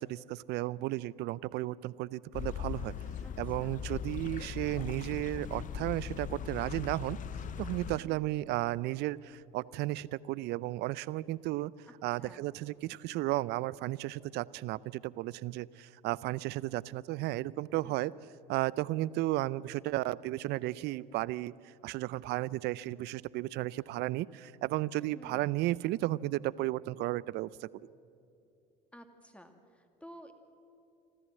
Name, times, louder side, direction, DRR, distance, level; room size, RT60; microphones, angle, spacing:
voice 1, 0.0-2.9 3.4-7.2 7.6-11.7 12.0-18.1 18.5-27.7, right 17 dB, 55° right, 21 dB, 0.5 m, -34 dB
sound 1, 2.3-8.0, left 8 dB, 40° left, 0.8 m, -39 dB
voice 2, 3.2-3.8 7.9-8.2 11.8-12.4 17.8-18.0 25.1-25.6 28.9-30.3, equal, 5° left, 6 dB, 2.3 m, -54 dB
25.5 x 14.0 x 7.6 m, 2.6 s
hypercardioid pair, 75°, 20 cm